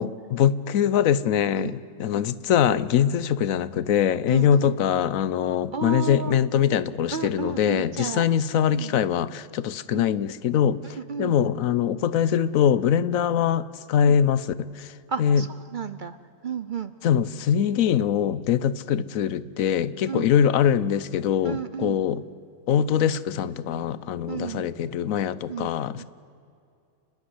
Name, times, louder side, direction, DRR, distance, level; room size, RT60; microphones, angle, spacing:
voice 1, 0.0-10.8 11.2-14.9 15.2-15.5 17.0-22.2 22.7-26.0, left 9 dB, 85° left, 17 dB, 1.1 m, -23 dB
voice 2, 4.3-4.7 5.7-6.4 7.1-8.3 8.7-9.0 9.9-10.0 10.8-11.3 14.0-14.2 15.1-16.2 16.4-16.9 20.1-20.3 21.4-22.0 24.3-24.7 25.5-25.7 26.0-26.1, right 6 dB, 50° right, 12 dB, 0.6 m, -32 dB
29.5 x 11.0 x 9.8 m, 2.5 s
omnidirectional pair, 1.4 m